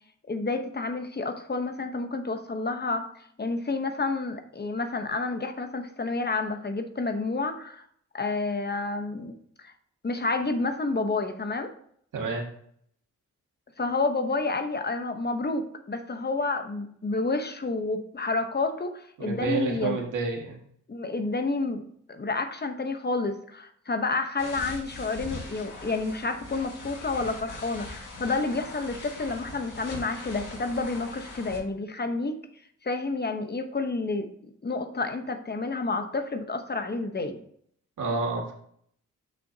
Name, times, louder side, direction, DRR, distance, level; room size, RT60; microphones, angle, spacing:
voice 1, 0.3-7.8 8.1-9.7 10.0-11.7 13.8-20.0 20.9-21.8 22.1-32.4 32.8-34.3 34.6-37.4, left 3 dB, 35° left, 7 dB, 1.0 m, -30 dB
voice 2, 12.1-12.4 19.2-20.6 38.0-38.5, right 4 dB, 85° right, 0 dB, 1.9 m, -29 dB
sound 1, 24.4-31.6, left 2 dB, 80° left, 1.8 m, -41 dB
7.7 x 6.3 x 2.8 m, 0.64 s
cardioid pair, 80°, 31 cm